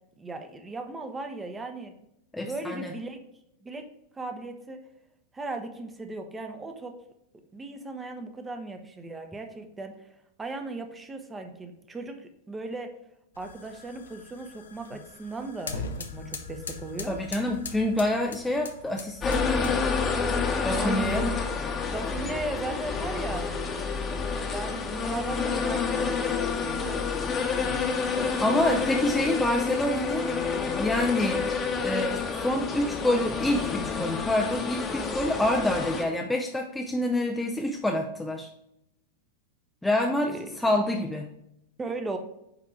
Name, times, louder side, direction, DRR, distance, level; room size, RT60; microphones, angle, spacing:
voice 1, 0.2-1.9 2.4-3.2 3.6-3.9 4.1-4.8 5.3-7.0 7.5-10.0 10.4-12.9 13.4-17.2 20.7-21.4 21.9-23.5 24.4-27.7 40.3-40.6 41.8-42.2, right 3 dB, 15° right, 6 dB, 0.9 m, -37 dB
voice 2, 2.3-2.9 17.1-19.7 20.6-21.3 28.4-30.3 30.8-31.5 31.8-38.5 39.8-41.3, left 1 dB, 5° left, 2 dB, 0.6 m, -27 dB
sound 1, 13.3-20.0, left 4 dB, 70° left, 0.7 m, -41 dB
sound 2, 19.2-36.0, left 5 dB, 25° left, 1.1 m, -29 dB
8.9 x 3.6 x 4.7 m, 0.80 s
figure-of-eight pair, 90°, 0 cm